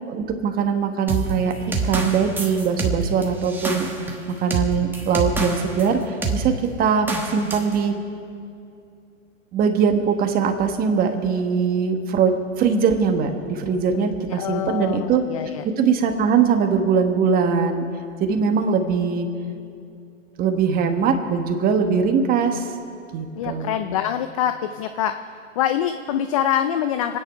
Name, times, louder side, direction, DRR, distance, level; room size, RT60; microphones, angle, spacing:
voice 1, 0.1-3.9 4.3-6.5 6.8-7.9 9.5-15.2 15.8-17.8 18.2-19.3 20.4-22.7 23.1-23.8, right 6 dB, 20° right, 6 dB, 1.3 m, -21 dB
sound 1, 1.1-5.9 6.2-6.4 7.1-7.7, right 3 dB, 5° right, 1.4 m, -26 dB
voice 2, 13.9-15.7 23.4-25.1 25.6-27.2, left 10 dB, 30° left, 9 dB, 0.4 m, -25 dB
24.5 x 9.7 x 5.6 m, 2.5 s
hypercardioid pair, 135°, 39 cm